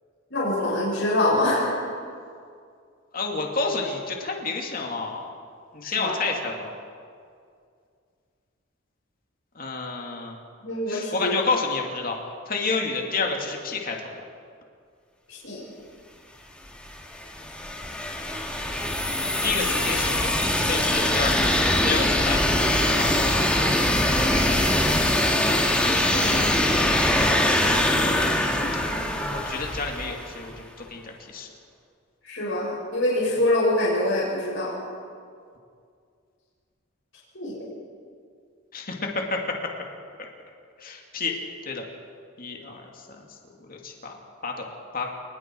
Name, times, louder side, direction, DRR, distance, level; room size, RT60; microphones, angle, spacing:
voice 1, 0.3-1.8 5.8-6.1 10.6-11.3 15.3-15.6 26.1-26.4 28.6-28.8 32.2-34.7 37.3-37.6, left 1 dB, 65° left, -6 dB, 6.2 m, -25 dB
voice 2, 3.1-5.3 5.7-6.7 9.5-10.3 10.9-12.2 12.5-14.1 19.4-20.3 20.6-23.3 27.1-27.3 29.3-31.5 38.7-39.4 40.2-40.3 40.8-41.3 41.7-41.8 42.4-42.8 43.6-44.2 44.4-44.6 44.9-45.1, left 4 dB, 45° left, 1 dB, 2.5 m, -29 dB
sound 1, 16.7-30.4, left 1 dB, 5° left, 2.1 m, -23 dB
29.0 x 20.0 x 4.7 m, 2.2 s
head